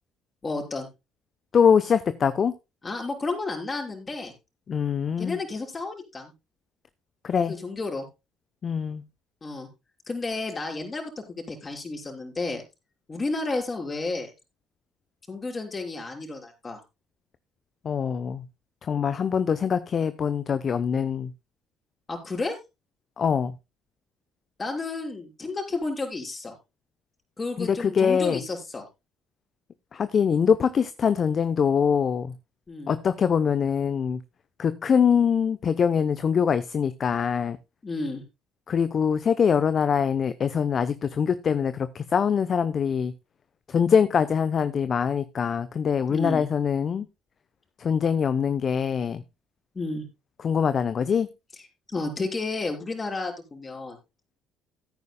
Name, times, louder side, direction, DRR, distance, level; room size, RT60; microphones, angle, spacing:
voice 1, 0.4-0.9 2.8-4.3 5.2-6.3 7.5-8.1 9.4-9.7 10.1-12.6 13.1-14.3 15.3-16.8 22.1-22.6 24.6-26.5 27.4-28.9 32.7-33.0 37.8-38.2 46.1-46.5 49.7-50.1 51.9-54.0, left 3 dB, 30° left, 2 dB, 5.8 m, -31 dB
voice 2, 1.5-2.5 4.7-5.4 7.2-7.6 8.6-9.0 17.8-18.4 18.9-21.3 23.2-23.5 27.6-28.4 29.9-32.3 32.9-34.2 34.6-37.6 38.7-43.1 43.7-47.1 47.8-49.2 50.4-51.3, left 7 dB, 45° left, 13 dB, 0.8 m, -23 dB
17.0 x 9.6 x 2.3 m, 0.25 s
hypercardioid pair, 55°, 0 cm